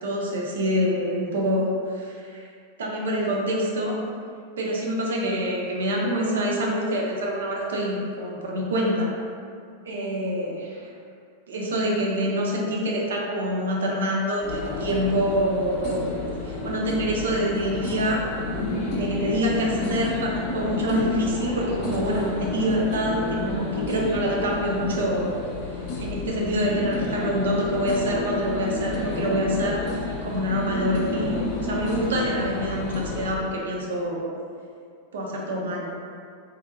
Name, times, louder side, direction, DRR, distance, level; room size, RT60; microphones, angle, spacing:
voice 1, 0.0-2.5 2.8-4.0 4.6-9.1 9.8-10.9 11.5-16.2 16.4-18.3 18.9-25.4 26.0-34.3 35.1-35.9, equal, 65° right, -2 dB, 0.4 m, -26 dB
sound 1, 14.4-33.3, left 3 dB, 45° left, 0.4 m, -30 dB
2.5 x 2.1 x 2.5 m, 2.3 s
figure-of-eight pair, 90°, 0 cm